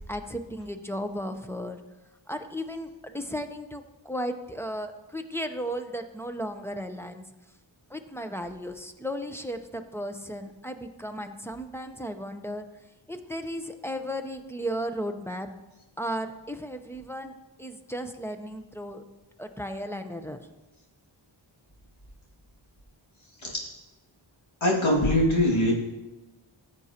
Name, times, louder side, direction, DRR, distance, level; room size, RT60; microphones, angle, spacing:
voice 1, 0.1-1.8 2.3-7.2 7.9-12.6 13.1-15.5 16.0-19.0 19.4-20.4, equal, 5° left, 7 dB, 0.7 m, -35 dB
voice 2, 23.4-23.7 24.6-25.7, left 1 dB, 75° left, -5 dB, 2.3 m, -22 dB
14.5 x 8.2 x 2.9 m, 1.1 s
wide cardioid pair, 55°, 48 cm